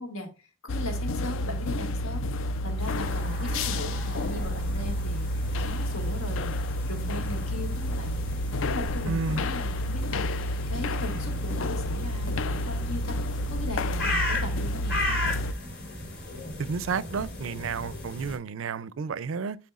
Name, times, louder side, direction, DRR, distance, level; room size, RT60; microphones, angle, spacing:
voice 1, 0.0-6.5 6.9-8.4 8.6-13.2 13.5-15.4, left 2 dB, 90° left, 1.9 m, -38 dB
sound 1, 0.7-15.5, left 1 dB, 65° left, 0.4 m, -30 dB
sound 2, 2.8-18.4, left 2 dB, 50° left, 3.6 m, -36 dB
voice 2, 9.0-9.4 16.6-19.6, right 5 dB, 70° right, 0.4 m, -31 dB
9.4 x 4.3 x 2.4 m
head